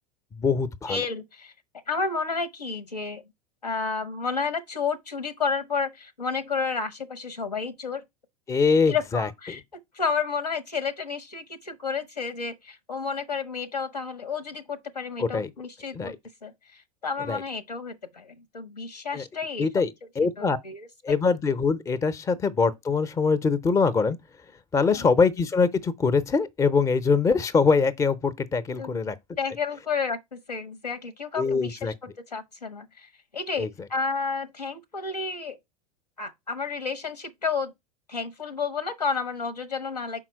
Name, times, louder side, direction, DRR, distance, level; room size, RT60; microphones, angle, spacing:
voice 1, 0.4-1.0 8.5-9.3 15.2-15.5 15.9-16.2 17.3-17.4 19.1-19.2 19.6-20.6 21.0-24.2 24.7-29.1 31.4-31.9 33.6-33.7, left 4 dB, 15° left, 0.6 m, -23 dB
voice 2, 0.9-1.5 1.9-3.2 3.6-8.0 8.9-19.7 20.4-21.1 24.8-25.1 28.8-28.9 29.4-31.9 32.3-35.6 36.2-37.7 38.1-40.2, left 5 dB, 80° left, 1.0 m, -31 dB
5.9 x 4.5 x 4.5 m
figure-of-eight pair, 85°, 20 cm